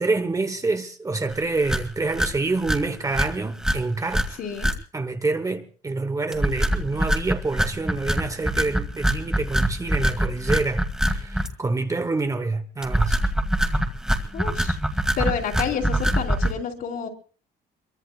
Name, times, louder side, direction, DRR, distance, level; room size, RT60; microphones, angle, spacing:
voice 1, 0.0-4.4 4.9-13.2, right 3 dB, 20° right, 1.2 m, -27 dB
sound 1, 1.3-1.4 1.6-1.8 2.1-2.3 2.6-2.8 3.1-3.3 3.6-3.8 4.1-4.3 4.6-4.7 6.3-11.5 12.8-16.5, right 1 dB, 5° right, 2.1 m, -23 dB
voice 2, 4.4-4.7 14.3-14.8 15.2-17.1, left 7 dB, 60° left, 4.3 m, -29 dB
24.0 x 23.5 x 2.5 m
cardioid pair, 110°, 17 cm